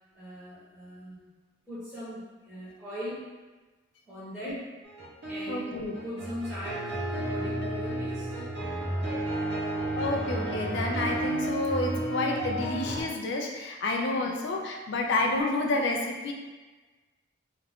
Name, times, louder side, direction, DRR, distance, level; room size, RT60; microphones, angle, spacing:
voice 1, 0.1-1.2 1.7-3.2 4.1-4.7 5.3-8.3 14.1-14.3, equal, 5° right, -12 dB, 0.8 m, -40 dB
sound 1, 4.8-13.0, right 1 dB, 60° right, 0.7 m, -32 dB
voice 2, 5.5-5.9 9.9-16.3, left 2 dB, 60° left, 1 dB, 0.3 m, -29 dB
2.3 x 2.3 x 3.4 m, 1.3 s
head